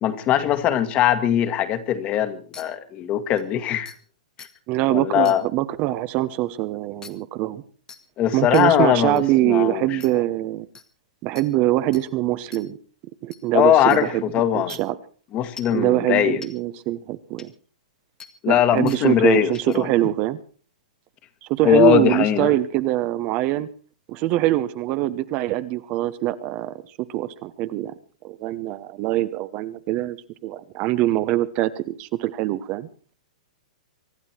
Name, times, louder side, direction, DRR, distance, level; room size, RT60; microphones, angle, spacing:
voice 1, 0.0-3.9 4.9-5.4 8.2-10.0 13.5-14.8 15.3-16.4 18.4-19.9 21.6-22.5, left 11 dB, 30° left, 10 dB, 1.9 m, -20 dB
sound 1, 2.5-2.6 3.4-3.5 3.9-4.0 4.4-4.5 5.2-5.4 7.0-7.1 7.9-8.0 8.5-8.6 9.2-9.3 10.0-10.1 10.7-10.8 11.4-11.5 11.9-12.0 12.5-12.6 13.3-13.4 13.9-14.0 14.7-14.8 15.6-15.8 16.4-16.5 17.4-17.5 18.2-18.3 18.9-19.0 19.5-19.8, left 5 dB, 15° left, 1.7 m, -42 dB
voice 2, 4.7-7.6 8.3-10.7 11.2-12.8 13.2-14.2 14.5-15.0 15.7-17.5 18.5-20.4 21.4-23.7 24.1-27.9 28.2-30.2 30.4-32.9, right 15 dB, 35° right, 12 dB, 1.1 m, -23 dB
24.5 x 11.0 x 4.6 m, 0.41 s
hypercardioid pair, 130°, 4 cm